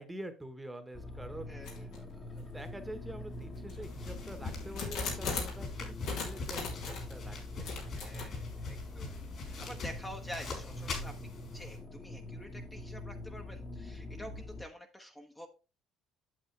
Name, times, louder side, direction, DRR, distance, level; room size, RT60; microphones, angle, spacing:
voice 1, 0.0-7.7, right 1 dB, 10° right, 9 dB, 1.2 m, -46 dB
sound 1, 0.9-14.6, left 2 dB, 30° left, 1.5 m, -44 dB
voice 2, 1.5-1.9 7.9-15.5, equal, 10° left, 3 dB, 1.0 m, -48 dB
Door Handle jiggle, 1.6-2.0 2.6-2.7 3.4-5.6 6.0-7.1 7.6-8.3, left 4 dB, 80° left, 3.0 m, -39 dB
sound 2, 3.8-11.8, left 3 dB, 50° left, 4.0 m, -43 dB
8.6 x 7.1 x 3.3 m, 0.31 s
cardioid pair, 100°, 0 cm